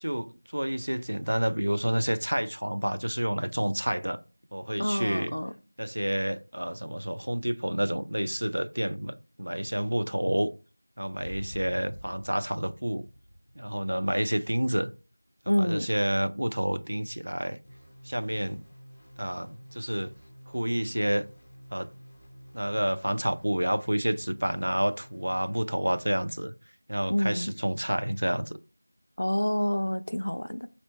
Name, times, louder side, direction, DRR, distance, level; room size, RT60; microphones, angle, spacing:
voice 1, 0.0-4.2 4.5-5.3 5.8-10.5 11.0-13.1 13.6-14.9 15.6-17.6 18.0-18.6 19.2-20.1 20.5-21.2 21.7-21.9 22.5-26.5 26.9-28.6, right 1 dB, 85° right, 0.4 m, -29 dB
voice 2, 4.8-5.5 15.5-15.9 27.1-27.5 29.2-30.7, equal, 70° left, 0.3 m, -27 dB
sound 1, 11.2-14.4 14.6-14.9, equal, 50° right, 0.6 m, -46 dB
sound 2, 17.6-25.4, equal, 15° left, 0.6 m, -51 dB
3.7 x 2.1 x 3.3 m
figure-of-eight pair, 180°, 0 cm